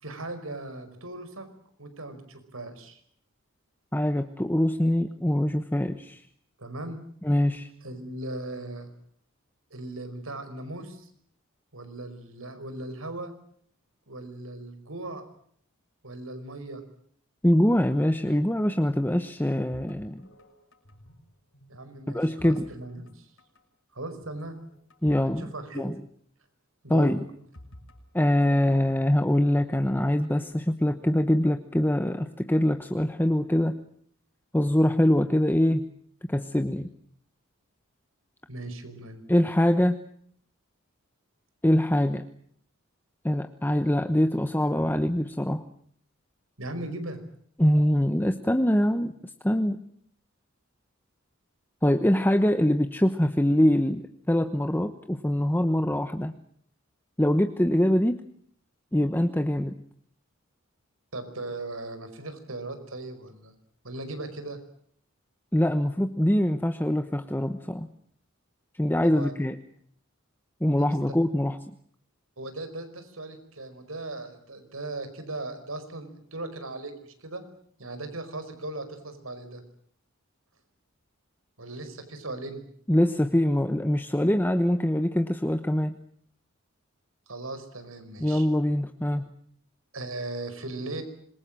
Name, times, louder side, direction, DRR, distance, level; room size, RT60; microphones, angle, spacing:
voice 1, 0.0-1.5 1.8-3.0 6.6-7.0 7.8-8.9 9.7-11.1 11.7-13.3 14.1-15.2 16.0-16.8 21.7-23.3 23.9-24.6 25.2-25.9 26.8-27.1 38.5-39.2 46.6-47.2 61.1-63.5 63.8-64.6 69.0-69.3 70.8-70.9 72.4-77.4 77.8-79.6 81.6-82.7 87.3-88.5 89.9-91.0, right 2 dB, 85° right, 9 dB, 5.2 m, -38 dB
voice 2, 3.9-6.2 7.2-7.7 17.4-20.2 22.1-22.7 25.0-25.4 25.7-25.9 26.9-27.3 28.1-33.8 34.5-35.9 36.3-36.9 39.3-40.0 41.6-42.2 43.2-45.6 47.6-49.1 49.4-49.8 51.8-56.3 57.2-58.2 58.9-59.7 65.5-67.9 68.8-69.6 70.6-71.6 82.9-86.0 88.2-89.2, left 1 dB, 10° left, 8 dB, 1.0 m, -23 dB
sound 1, 19.7-21.3 21.5-23.1 23.4-23.6 24.2-25.3 25.6-25.7 26.9-29.0 29.6-30.4, left 1 dB, 70° left, 6.6 m, -52 dB
26.5 x 22.5 x 7.5 m, 0.63 s
head